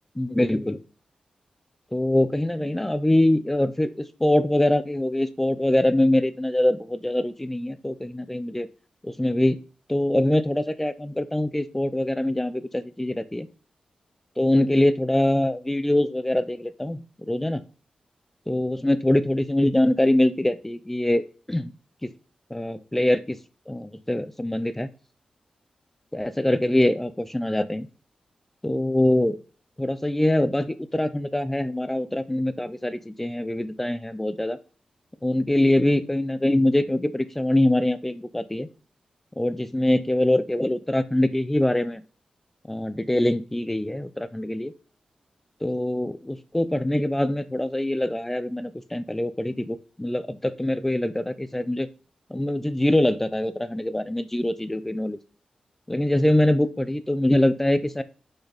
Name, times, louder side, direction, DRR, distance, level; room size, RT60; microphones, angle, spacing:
voice 1, 0.2-0.8 1.9-8.7 9.0-9.6 9.9-13.5 14.4-17.6 18.5-21.7 22.0-22.1 22.5-23.4 23.7-24.9 26.1-27.9 28.6-29.4 29.8-34.6 35.2-38.7 39.4-42.0 42.7-44.7 45.6-51.9 52.3-55.2 55.9-58.0, left 1 dB, 10° left, 13 dB, 0.5 m, -23 dB
6.6 x 6.0 x 4.0 m, 0.38 s
wide cardioid pair, 115°, 2 cm